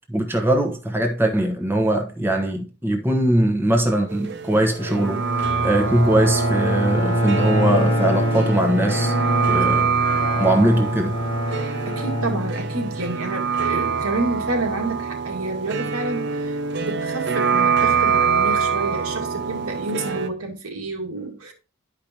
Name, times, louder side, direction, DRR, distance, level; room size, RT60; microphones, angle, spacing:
voice 1, 0.1-5.2 5.6-9.1 9.5-9.9 10.4-11.1, right 1 dB, 10° right, 1.1 m, -21 dB
sound 1, 4.1-20.3, right 6 dB, 50° right, 0.7 m, -25 dB
Bowed string instrument, 4.7-13.1, equal, 25° left, 1.3 m, -25 dB
voice 2, 11.5-21.5, right 2 dB, 85° right, 2.1 m, -29 dB
11.5 x 5.1 x 2.9 m
head